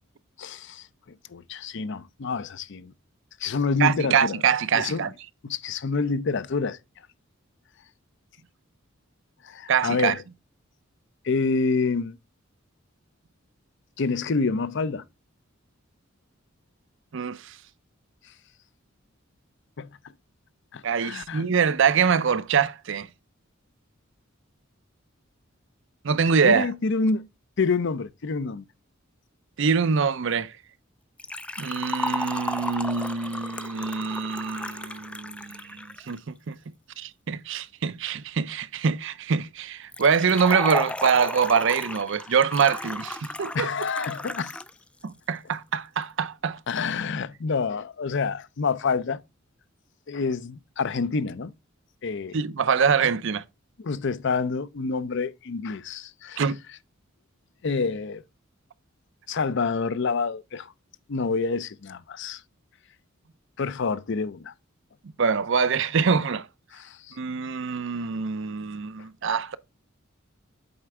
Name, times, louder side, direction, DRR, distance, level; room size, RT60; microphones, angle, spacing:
voice 1, 0.4-0.9 1.3-2.9 3.4-4.4 4.7-5.1 5.4-6.8 9.4-10.2 11.2-12.2 14.0-15.0 19.8-20.0 20.7-21.5 26.4-27.3 27.6-28.6 43.5-44.6 46.7-49.2 50.1-51.5 52.0-52.4 53.0-53.1 53.8-56.4 57.6-58.2 59.3-60.7 61.1-62.4 63.6-64.5 66.7-67.2, left 4 dB, 60° left, 0.6 m, -27 dB
voice 2, 3.8-5.1 9.7-10.1 17.1-17.5 20.8-23.1 26.0-26.7 29.6-30.5 31.6-36.6 37.0-43.7 45.0-46.6 52.3-53.4 56.4-56.6 65.2-66.5 67.2-69.6, right 6 dB, 60° right, 0.5 m, -24 dB
Liquid, 31.2-36.2 39.9-44.7 45.0-45.1 46.0-46.1, left 2 dB, 5° left, 0.3 m, -34 dB
8.0 x 4.3 x 3.6 m
head